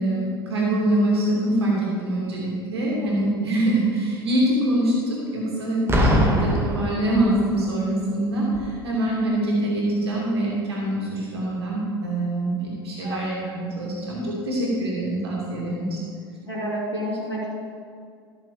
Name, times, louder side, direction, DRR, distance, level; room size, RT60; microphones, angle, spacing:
voice 1, 0.0-16.0, right 1 dB, 75° right, -4 dB, 2.9 m, -24 dB
Boom, 5.9-7.6 8.5-8.8, equal, 20° right, 2.0 m, -22 dB
voice 2, 13.0-13.5 16.4-17.5, equal, 90° left, -7 dB, 3.1 m, -30 dB
14.5 x 6.8 x 5.1 m, 2.3 s
figure-of-eight pair, 75°, 13 cm